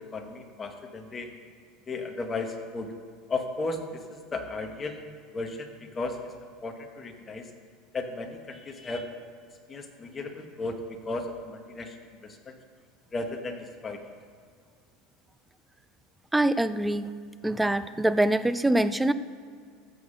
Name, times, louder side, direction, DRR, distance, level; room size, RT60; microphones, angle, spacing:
voice 1, 0.0-1.3 1.9-2.9 3.3-4.0 4.3-5.0 5.3-6.3 6.6-7.5 7.9-9.1 9.7-11.9 12.2-12.4 13.1-14.0, left 3 dB, 20° left, 5 dB, 1.1 m, -35 dB
voice 2, 16.3-17.1 17.4-19.1, right 1 dB, 5° right, 13 dB, 0.4 m, -24 dB
14.5 x 5.6 x 6.5 m, 2.2 s
supercardioid pair, 150°, 0 cm